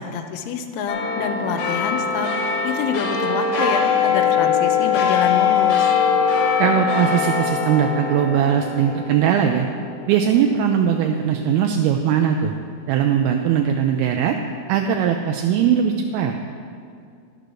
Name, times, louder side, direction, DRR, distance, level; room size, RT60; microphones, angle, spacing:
voice 1, 0.0-2.3 2.6-5.9, left 6 dB, 80° left, 8 dB, 2.6 m, -27 dB
sound 1, 0.9-11.6 12.1-12.2, left 6 dB, 65° left, 2.4 m, -22 dB
voice 2, 6.6-9.7 10.1-12.5 12.9-14.4 14.7-16.3, right 8 dB, 85° right, 3 dB, 2.4 m, -20 dB
12.0 x 6.7 x 6.3 m, 2.3 s
omnidirectional pair, 4.6 m